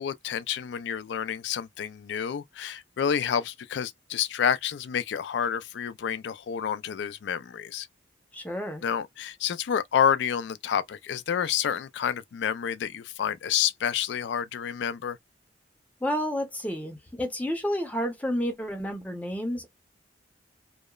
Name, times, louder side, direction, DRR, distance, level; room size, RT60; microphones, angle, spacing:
voice 1, 0.0-7.9 8.8-15.2, left 8 dB, 65° left, 0.3 m, -29 dB
voice 2, 8.3-8.8 16.0-19.7, equal, 10° left, 0.6 m, -30 dB
2.9 x 2.0 x 2.3 m
head